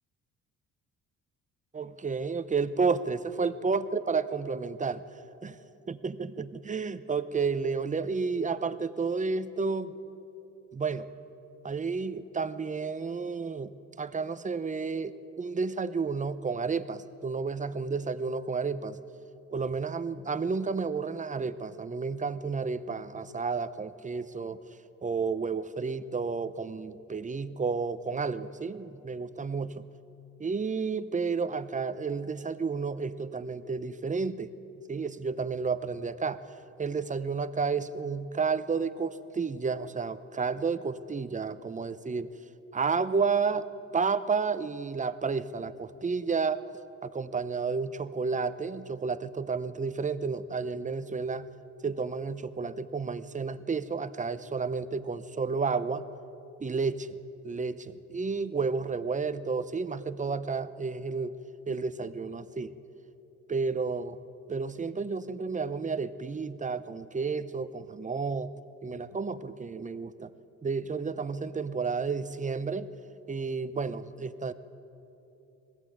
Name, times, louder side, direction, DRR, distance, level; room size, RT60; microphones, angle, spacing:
voice 1, 1.7-5.0 5.4-5.6 5.9-9.9 10.7-11.1 11.6-13.7 14.0-19.0 19.5-24.6 25.0-29.8 30.4-34.5 34.9-36.4 36.8-42.3 42.7-43.7 43.9-46.6 47.0-51.5 51.8-56.0 56.6-57.2 57.4-61.3 61.7-62.7 63.5-64.2 64.5-68.5 68.8-70.3 70.6-72.9 73.3-74.5, right 4 dB, 25° right, 13 dB, 0.8 m, -31 dB
20.5 x 16.0 x 8.6 m, 3.0 s
cardioid pair, 90°, 30 cm